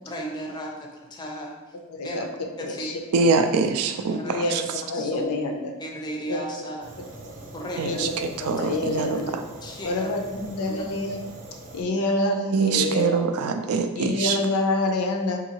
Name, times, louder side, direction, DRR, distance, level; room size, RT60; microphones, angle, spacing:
voice 1, 0.0-1.8 2.0-2.3 2.6-3.0 4.1-4.5 4.9-5.2 5.8-7.2 7.5-8.1 9.6-10.1 10.4-10.8, right 1 dB, 20° left, -1 dB, 0.5 m, -35 dB
voice 2, 1.9-3.0 4.2-5.7 6.3-6.7 7.2-7.3 7.8-9.4 9.8-10.2 10.5-11.2 11.7-13.2 13.9-15.4, left 2 dB, 75° left, 4 dB, 0.4 m, -27 dB
voice 3, 3.1-4.6 7.8-8.1 8.4-9.3 12.5-14.4, right 4 dB, 70° right, 7 dB, 0.3 m, -24 dB
Fire, 6.8-11.8, right 1 dB, 35° right, 0.6 m, -43 dB
3.8 x 2.7 x 2.8 m, 1.1 s
head